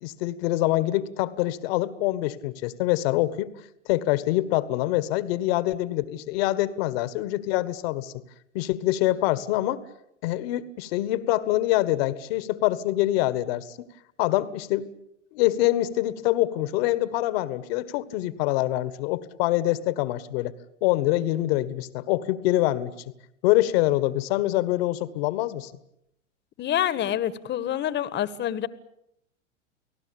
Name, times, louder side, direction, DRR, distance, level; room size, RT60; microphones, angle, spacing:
voice 1, 0.0-3.5 3.8-8.2 8.5-9.8 10.2-13.9 14.2-14.9 15.3-20.5 20.8-22.9 23.4-25.7, left 16 dB, 50° left, 15 dB, 1.7 m, -25 dB
voice 2, 26.6-28.7, left 11 dB, 30° left, 16 dB, 1.5 m, -27 dB
30.0 x 18.5 x 8.7 m, 0.79 s
figure-of-eight pair, 95°, 38 cm